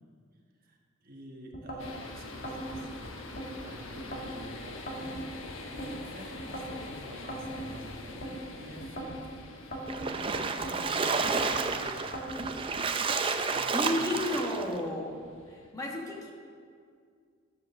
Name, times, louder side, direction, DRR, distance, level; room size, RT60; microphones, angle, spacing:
voice 1, 0.6-3.0 3.6-5.2 5.7-12.7 13.4-14.1, right 1 dB, 45° right, 1 dB, 1.2 m, -48 dB
sound 1, 1.5-1.9 2.4-3.5 4.0-4.4 4.9-5.9 6.4-6.8 7.3-8.3 8.8-9.2 9.7-10.8 11.2-11.6 12.1-12.6, right 1 dB, 45° left, 1.9 m, -39 dB
sound 2, 1.8-15.7, left 2 dB, 70° left, 1.1 m, -46 dB
Splash splatter, 9.9-14.7, right 4 dB, 25° right, 0.5 m, -30 dB
voice 2, 13.7-16.3, left 1 dB, 15° left, -1 dB, 1.4 m, -33 dB
11.5 x 7.9 x 6.5 m, 2.1 s
head